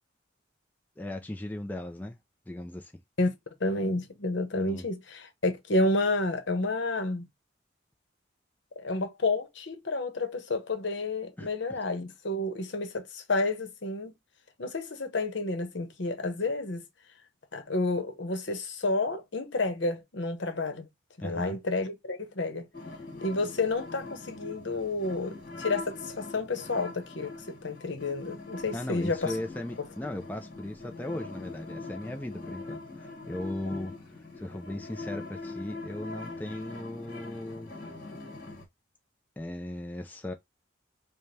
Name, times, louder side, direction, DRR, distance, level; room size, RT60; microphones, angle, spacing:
voice 1, 1.0-2.2 2.5-2.9 4.5-4.9 11.4-11.8 21.2-21.6 28.7-37.7 39.4-40.3, left 1 dB, 10° left, 0.4 m, -38 dB
voice 2, 3.6-7.2 8.8-14.1 14.6-16.8 17.5-20.9 21.2-22.7 23.2-29.3, left 2 dB, 70° left, 0.9 m, -30 dB
sound 1, 22.7-38.6, left 3 dB, 45° left, 1.2 m, -42 dB
5.0 x 2.2 x 2.7 m
head